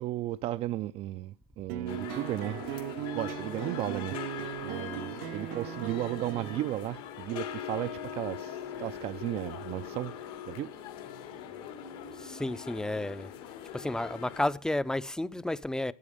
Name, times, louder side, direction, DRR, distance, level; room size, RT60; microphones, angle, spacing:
voice 1, 0.0-10.1 10.5-10.7, right 14 dB, 55° right, 0.5 m, -35 dB
sound 1, 1.7-6.7, right 14 dB, 80° right, 1.0 m, -38 dB
sound 2, 1.9-14.4, left 9 dB, 80° left, 2.7 m, -41 dB
voice 2, 12.2-13.3 13.7-15.9, left 1 dB, 5° left, 0.5 m, -32 dB
12.5 x 9.1 x 5.0 m
cardioid pair, 120°, 12 cm